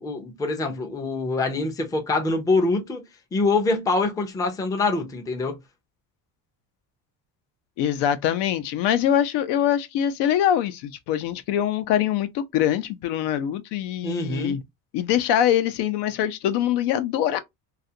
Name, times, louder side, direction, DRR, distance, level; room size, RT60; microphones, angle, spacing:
voice 1, 0.0-3.0 3.3-5.6 14.0-14.6, left 3 dB, 10° left, 0.4 m, -24 dB
voice 2, 7.8-14.6 14.9-17.4, left 10 dB, 75° left, 0.6 m, -23 dB
2.5 x 2.4 x 2.6 m
cardioid pair, 140°, 41 cm